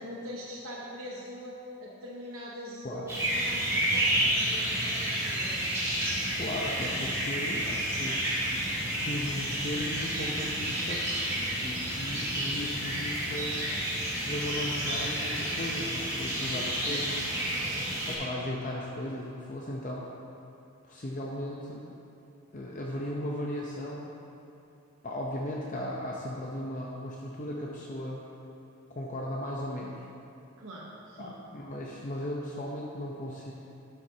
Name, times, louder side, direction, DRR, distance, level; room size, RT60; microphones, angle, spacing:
voice 1, 0.0-5.8 30.5-31.3, equal, 75° right, -4 dB, 1.0 m, -42 dB
sound 1, 3.1-18.1, right 1 dB, 15° right, 1.8 m, -30 dB
voice 2, 6.4-8.2 9.0-11.0 11.6-13.7 14.3-17.2 18.1-20.1 20.8-21.9 22.5-24.1 25.0-28.2 28.9-30.0 31.2-33.5, left 1 dB, 35° left, -3 dB, 0.6 m, -36 dB
11.5 x 7.8 x 2.8 m, 2.8 s
head